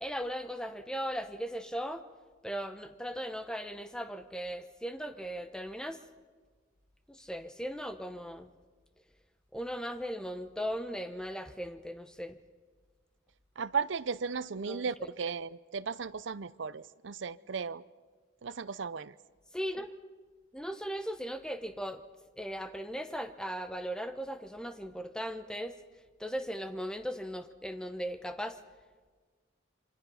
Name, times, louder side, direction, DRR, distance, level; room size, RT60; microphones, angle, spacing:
voice 1, 0.0-2.0 2.4-6.0 7.1-8.5 9.5-12.4 14.5-15.1 19.5-19.9 20.5-22.0 22.4-25.7 26.2-28.6, equal, 5° left, 9 dB, 0.9 m, -38 dB
voice 2, 13.6-17.8 18.4-19.1, right 5 dB, 70° right, 17 dB, 0.6 m, -35 dB
27.5 x 24.5 x 5.6 m, 1.5 s
head